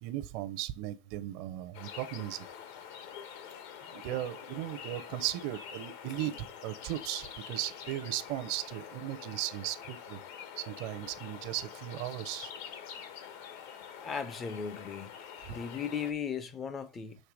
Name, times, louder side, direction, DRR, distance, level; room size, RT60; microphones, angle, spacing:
voice 1, 0.0-2.5 3.9-10.2 10.6-12.5 15.5-15.6, right 14 dB, 50° right, 0.6 m, -37 dB
sound 1, 1.7-16.1, left 8 dB, 60° left, 1.1 m, -46 dB
voice 2, 14.0-17.2, left 7 dB, 20° left, 0.5 m, -37 dB
6.6 x 3.3 x 4.7 m
supercardioid pair, 165°, 0 cm